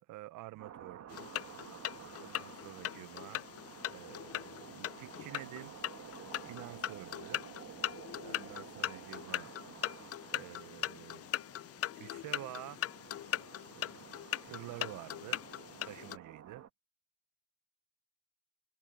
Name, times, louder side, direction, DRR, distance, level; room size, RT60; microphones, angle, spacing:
voice 1, 0.1-1.3 2.2-3.4 3.9-5.7 6.4-7.4 8.2-9.5 10.3-11.3 11.9-12.8 13.7-14.1 14.4-15.4 15.8-16.6, right 17 dB, 90° right, 0.8 m, -49 dB
sound 1, 0.6-16.7, right 9 dB, 65° right, 2.3 m, -52 dB
sound 2, 1.1-16.2, left 12 dB, 55° left, 0.5 m, -40 dB
cardioid pair, 90°, 30 cm